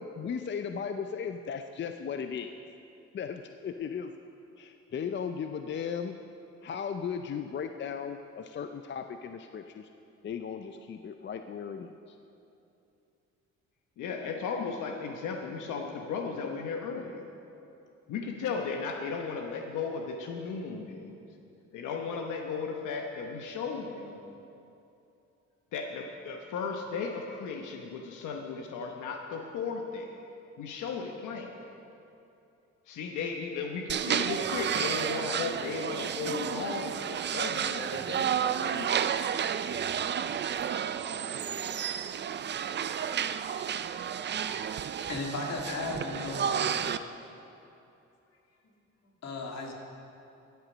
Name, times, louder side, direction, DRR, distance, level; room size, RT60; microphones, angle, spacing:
voice 1, 0.0-2.6 3.1-4.1 4.6-6.2 6.6-9.9 10.2-12.2, left 7 dB, 40° left, 7 dB, 0.5 m, -36 dB
voice 2, 14.0-17.3 18.1-21.2 21.7-24.2 25.7-30.2 30.6-31.6 32.9-39.1, left 5 dB, 85° left, 2 dB, 1.0 m, -36 dB
sound 1, 33.9-47.0, right 8 dB, 35° right, 0.4 m, -31 dB
voice 3, 44.9-46.9 49.2-49.7, left 3 dB, 60° left, 0 dB, 2.2 m, -36 dB
13.0 x 8.1 x 6.1 m, 2.8 s
cardioid pair, 90°, 30 cm